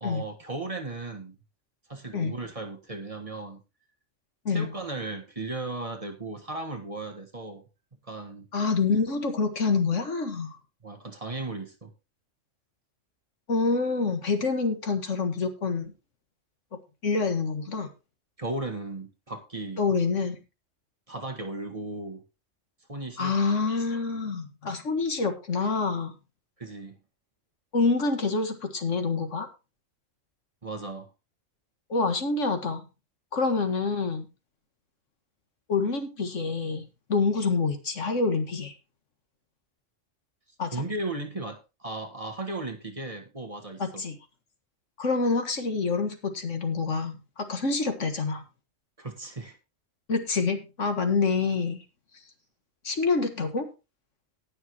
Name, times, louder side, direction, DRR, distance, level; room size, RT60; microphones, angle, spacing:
voice 1, 0.0-1.3 1.9-3.6 4.5-7.6 8.0-8.5 10.8-11.9 18.4-19.9 21.1-22.2 22.9-23.4 23.9-24.0 26.6-27.0 30.6-31.1 40.7-44.0 49.0-49.6, right 2 dB, 30° right, 4 dB, 1.5 m, -36 dB
voice 2, 8.5-10.6 13.5-15.9 17.0-17.9 19.8-20.4 23.2-26.1 27.7-29.5 31.9-32.8 33.3-34.3 35.7-38.7 40.6-40.8 43.8-44.2 45.0-48.4 50.1-51.8 52.8-53.7, left 4 dB, 75° left, 6 dB, 1.9 m, -27 dB
18.5 x 6.6 x 3.0 m, 0.29 s
omnidirectional pair, 1.3 m